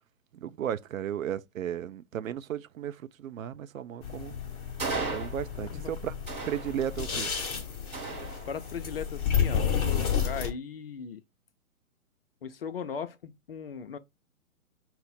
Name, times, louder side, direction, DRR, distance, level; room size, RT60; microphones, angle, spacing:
voice 1, 0.3-4.3 5.1-6.1 6.5-7.3, right 10 dB, 65° right, 0.5 m, -35 dB
sound 1, 4.0-10.5, left 7 dB, 25° left, 0.8 m, -31 dB
sound 2, 4.8-5.8 6.3-7.2 7.9-8.9, right 4 dB, 15° right, 1.1 m, -36 dB
voice 2, 5.6-5.9 8.5-11.2 12.4-14.0, left 6 dB, 45° left, 0.4 m, -38 dB
5.7 x 2.1 x 4.0 m
figure-of-eight pair, 130°, 43 cm